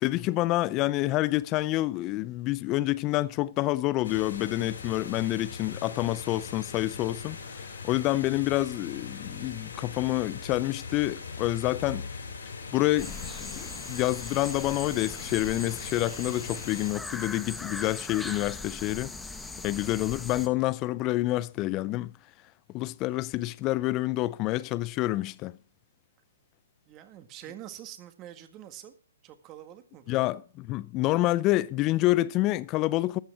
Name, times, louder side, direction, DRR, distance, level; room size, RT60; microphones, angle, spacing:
voice 1, 0.0-12.1 12.7-19.2 19.6-22.1 22.7-25.6 30.1-33.2, left 17 dB, 30° left, 0.6 m, -28 dB
sound 1, 4.0-16.9, left 4 dB, 75° left, 5.1 m, -41 dB
sound 2, 13.0-20.5, left 3 dB, 5° left, 1.1 m, -40 dB
voice 2, 19.4-19.7 26.9-28.9 29.2-30.3, right 11 dB, 30° right, 1.8 m, -46 dB
13.0 x 8.6 x 5.9 m
hypercardioid pair, 130°, 0 cm